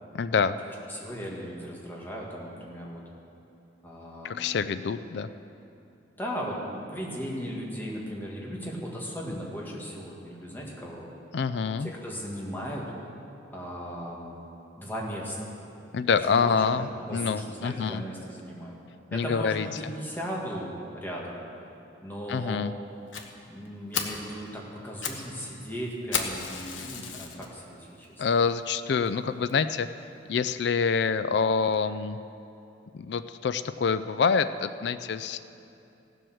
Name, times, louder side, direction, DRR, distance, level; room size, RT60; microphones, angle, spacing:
voice 1, 0.1-0.5 4.2-5.3 11.3-11.9 15.9-18.0 19.1-19.7 22.3-22.7 28.2-29.9 30.3-32.2 32.9-35.4, left 5 dB, 60° left, 12 dB, 0.4 m, -26 dB
voice 2, 0.7-3.0 3.8-4.7 6.2-11.1 11.8-12.9 13.5-14.4 14.8-15.5 16.2-16.6 17.1-18.8 19.1-21.4 22.0-22.6 23.5-28.1, equal, 10° left, -3 dB, 1.9 m, -37 dB
Fire, 23.1-23.3 23.7-23.8 23.9-24.2 24.8-25.3 25.5-25.6 26.1-27.5 28.0-28.1 28.7-28.8 29.1-29.2 29.5-29.6, left 6 dB, 85° left, 1.1 m, -33 dB
16.5 x 7.7 x 6.3 m, 2.7 s
head